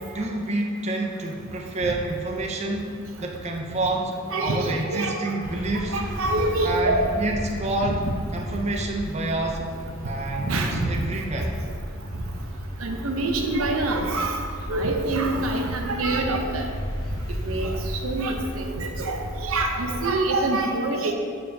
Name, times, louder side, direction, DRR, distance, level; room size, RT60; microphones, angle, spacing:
voice 1, 0.1-2.9 3.2-4.1 4.4-6.0 6.6-9.7 10.0-11.5, right 2 dB, 30° right, 1 dB, 0.5 m, -28 dB
voice 2, 4.3-5.3 5.8-7.1 7.8-8.0 10.4-10.9 12.8-14.4 14.7-16.7 17.4-17.7 18.0-21.1, right 2 dB, 90° right, 3 dB, 0.7 m, -25 dB
sound 1, 5.4-20.1, equal, 20° left, 0.6 m, -34 dB
6.7 x 6.4 x 2.7 m, 2.2 s
head